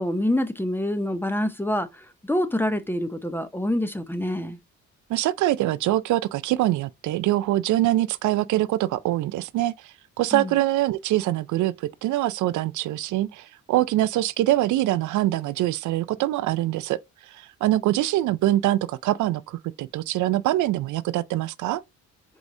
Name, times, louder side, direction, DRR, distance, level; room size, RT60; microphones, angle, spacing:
voice 1, 0.0-1.9 2.2-4.6 10.3-10.5, left 1 dB, 5° left, 0.6 m, -26 dB
voice 2, 5.1-17.0 17.3-21.8, right 15 dB, 75° right, 0.4 m, -24 dB
4.8 x 3.9 x 2.6 m
cardioid pair, 90°, 30 cm